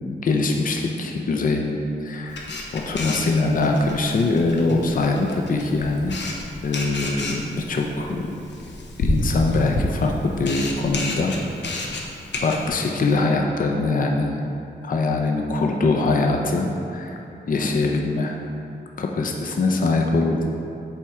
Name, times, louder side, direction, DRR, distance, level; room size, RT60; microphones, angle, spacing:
voice 1, 0.0-2.5 2.7-6.2 6.6-8.3 9.0-11.4 11.6-11.9 12.4-14.4 14.8-18.4 19.0-20.5, left 3 dB, 50° left, 2 dB, 0.5 m, -23 dB
Camera, 2.3-12.7, left 2 dB, 85° left, 0.8 m, -30 dB
7.0 x 4.5 x 3.6 m, 2.7 s
wide cardioid pair, 100°, 18 cm